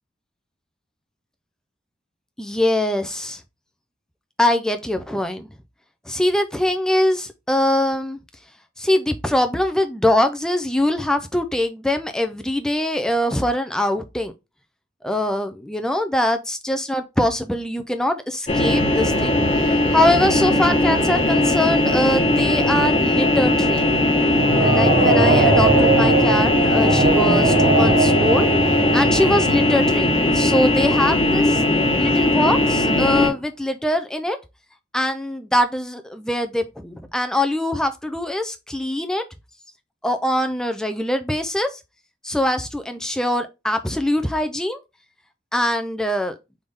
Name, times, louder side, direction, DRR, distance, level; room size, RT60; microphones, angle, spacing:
voice 1, 2.4-3.4 4.4-5.5 6.1-8.2 8.8-14.3 15.0-23.9 24.6-28.5 28.9-31.6 32.0-34.4 34.9-39.2 40.0-41.8 42.2-44.8 45.5-46.4, left 1 dB, 5° left, 0.3 m, -23 dB
sound 1, 18.5-33.3, left 1 dB, 30° left, 1.0 m, -19 dB
sound 2, 20.2-31.1, right 2 dB, 60° right, 1.1 m, -22 dB
3.5 x 3.4 x 3.9 m
head